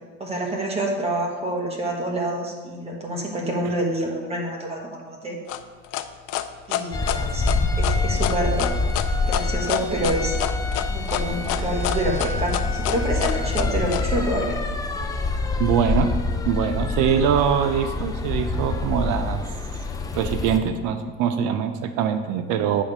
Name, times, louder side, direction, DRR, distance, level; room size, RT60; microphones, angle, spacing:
voice 1, 0.2-5.4 6.7-7.5 7.8-8.7 9.3-10.4 10.9-14.5, right 1 dB, 20° right, 0 dB, 1.1 m, -27 dB
sound 1, 5.5-14.0, left 13 dB, 80° left, 0.5 m, -27 dB
sound 2, 6.9-20.6, left 3 dB, 15° left, 0.3 m, -26 dB
voice 2, 15.6-16.1 16.5-19.4 20.1-22.8, right 8 dB, 90° right, 8 dB, 0.6 m, -23 dB
8.2 x 3.2 x 6.0 m, 1.4 s
cardioid pair, 160°, 30 cm